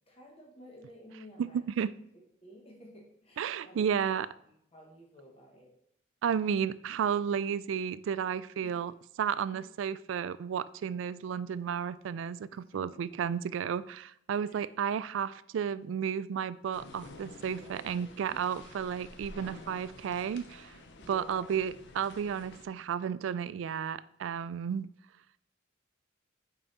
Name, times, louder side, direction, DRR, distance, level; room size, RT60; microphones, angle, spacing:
voice 1, 0.1-1.6 2.1-4.1 4.4-5.7 8.6-8.8 9.5-9.6 12.5-13.0 14.5-14.7 17.5-18.6 21.0-21.8, equal, 30° left, -1 dB, 1.3 m, -54 dB
voice 2, 1.4-1.9 3.4-4.3 6.2-8.9 9.2-20.8 21.1-24.9, right 7 dB, 70° right, 16 dB, 0.3 m, -32 dB
sound 1, 16.7-22.7, left 2 dB, 65° left, 0.7 m, -50 dB
5.6 x 4.7 x 4.1 m, 0.73 s
head